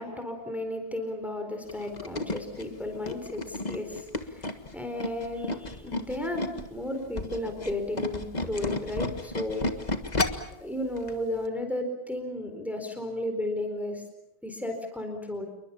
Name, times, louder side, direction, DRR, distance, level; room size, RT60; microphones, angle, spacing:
voice 1, 0.0-9.7 10.6-14.0 14.4-15.5, left 1 dB, ahead, 5 dB, 4.2 m, -34 dB
Tools, 1.7-6.7 7.0-10.5 11.0-11.1 11.4-11.5, left 2 dB, 25° left, 1.6 m, -32 dB
28.5 x 23.0 x 7.2 m, 0.90 s
omnidirectional pair, 2.0 m